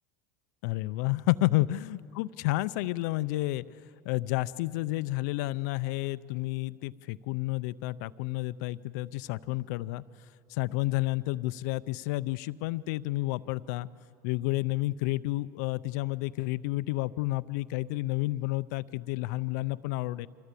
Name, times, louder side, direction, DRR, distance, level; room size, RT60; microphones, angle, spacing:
voice 1, 0.6-3.7 4.0-10.0 10.5-13.9 14.2-20.3, left 19 dB, 70° left, 15 dB, 0.5 m, -30 dB
25.0 x 16.5 x 8.3 m, 2.3 s
supercardioid pair, 125°, 10 cm